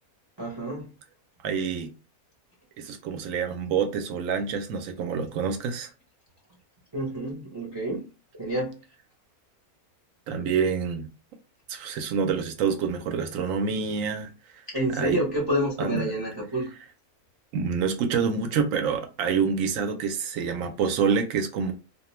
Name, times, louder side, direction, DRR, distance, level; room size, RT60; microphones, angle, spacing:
voice 1, 0.4-0.9 6.9-8.0 8.3-8.8 14.7-16.7, right 1 dB, 30° right, 0.5 m, -28 dB
voice 2, 1.4-1.9 2.8-5.9 10.3-11.1 11.7-14.6 15.0-15.2 15.8-16.1 17.5-21.7, right 6 dB, 70° right, 0.9 m, -27 dB
2.4 x 2.2 x 2.9 m
omnidirectional pair, 1.6 m